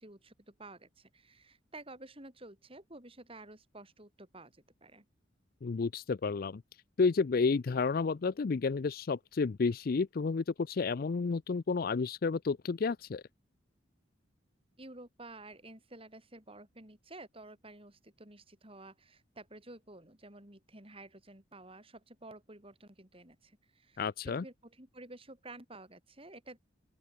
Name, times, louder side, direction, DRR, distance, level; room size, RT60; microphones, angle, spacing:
voice 1, 0.0-5.1 14.8-26.6, right 2 dB, 30° right, 5.3 m, -52 dB
voice 2, 5.6-6.6 7.0-13.2 24.0-24.4, left 4 dB, 50° left, 0.4 m, -31 dB
open air
head